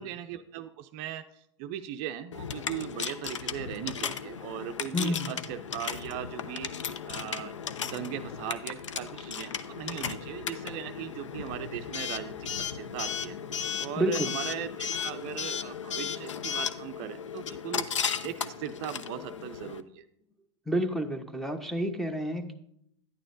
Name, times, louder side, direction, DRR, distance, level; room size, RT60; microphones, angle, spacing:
voice 1, 0.0-6.7 7.1-7.5 7.8-13.4 13.8-20.0, right 11 dB, 50° right, 9 dB, 0.4 m, -39 dB
Coin (dropping) / Alarm, 2.3-19.8, left 7 dB, 85° left, 0.5 m, -35 dB
voice 2, 4.9-5.4 14.0-14.3 20.7-22.5, equal, ahead, 8 dB, 0.8 m, -29 dB
10.5 x 8.9 x 2.6 m, 0.73 s
hypercardioid pair, 100°, 15 cm